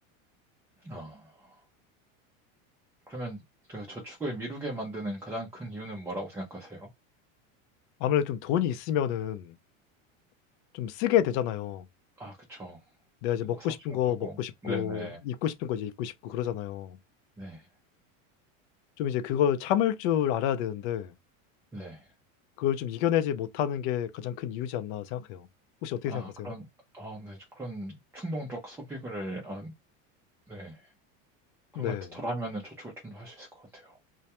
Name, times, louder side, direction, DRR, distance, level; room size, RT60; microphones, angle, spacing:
voice 1, 0.8-1.6 3.1-3.4 3.7-6.9 12.2-12.8 13.5-13.7 14.1-15.2 17.4-17.7 21.7-22.1 26.1-26.7 26.9-29.7 30.5-30.9 31.7-34.0, right 1 dB, 5° right, 0.4 m, -38 dB
voice 2, 8.0-9.6 10.7-11.9 13.2-17.0 19.0-21.1 22.6-25.5 25.8-26.5 31.8-32.1, left 10 dB, 60° left, 0.5 m, -29 dB
2.2 x 2.2 x 2.8 m
supercardioid pair, 135°, 39 cm